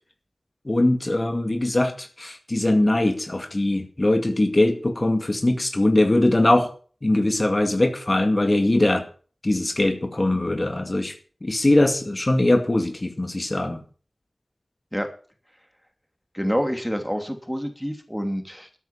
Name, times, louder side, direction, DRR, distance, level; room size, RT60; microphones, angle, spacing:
voice 1, 0.7-6.7 7.0-9.0 9.4-11.1 11.4-13.8, left 1 dB, 40° left, 6 dB, 2.2 m, -21 dB
voice 2, 16.3-18.8, equal, ahead, 6 dB, 2.9 m, -27 dB
13.0 x 9.4 x 7.2 m, 0.41 s
wide cardioid pair, 60°, 0 cm